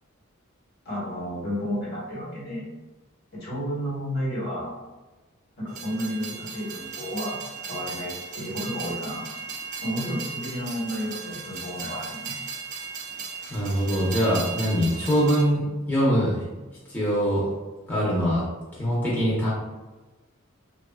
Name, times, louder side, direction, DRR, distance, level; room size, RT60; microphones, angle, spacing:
voice 1, 0.8-2.7 3.4-4.7 5.6-7.4 7.7-9.2 9.8-12.3, equal, 55° left, -6 dB, 1.1 m, -31 dB
Train, 5.7-15.4, right 5 dB, 40° right, 0.4 m, -36 dB
voice 2, 13.5-16.4 16.9-17.5 17.9-18.4 18.8-19.5, equal, 10° left, -8 dB, 0.7 m, -23 dB
3.4 x 2.3 x 2.2 m, 1.2 s
head